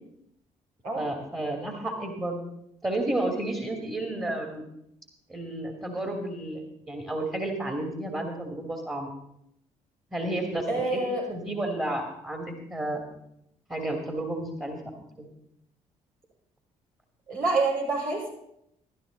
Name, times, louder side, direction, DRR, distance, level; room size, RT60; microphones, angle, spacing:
voice 1, 1.0-2.4 2.8-4.6 5.3-6.6 6.9-9.1 10.1-11.0 11.3-13.0 13.7-15.3, right 1 dB, 15° right, 2 dB, 2.5 m, -31 dB
voice 2, 10.7-11.2 17.3-18.3, right 3 dB, 70° right, -4 dB, 5.6 m, -27 dB
14.0 x 12.0 x 4.0 m, 0.78 s
hypercardioid pair, 50°, 17 cm